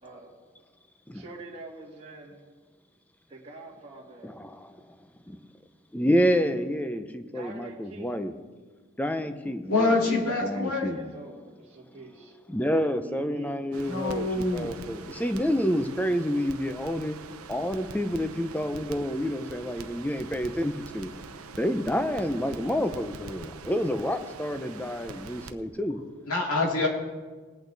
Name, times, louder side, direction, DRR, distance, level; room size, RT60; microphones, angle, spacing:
voice 1, 0.0-0.3 1.1-2.4 3.3-4.6 7.3-8.3 10.3-12.4 13.0-13.6, right 2 dB, 30° right, -5 dB, 1.9 m, -45 dB
voice 2, 4.2-4.8 5.3-5.4 5.9-8.3 9.0-11.1 11.9-12.0 12.5-17.2 17.5-21.1 21.6-26.0, equal, 5° left, 9 dB, 0.6 m, -29 dB
voice 3, 9.6-10.9 13.8-14.7 26.3-26.9, left 3 dB, 90° left, 0 dB, 2.5 m, -26 dB
Crackle, 13.7-25.5, right 4 dB, 85° right, 0.7 m, -44 dB
20.0 x 8.5 x 4.0 m, 1.4 s
head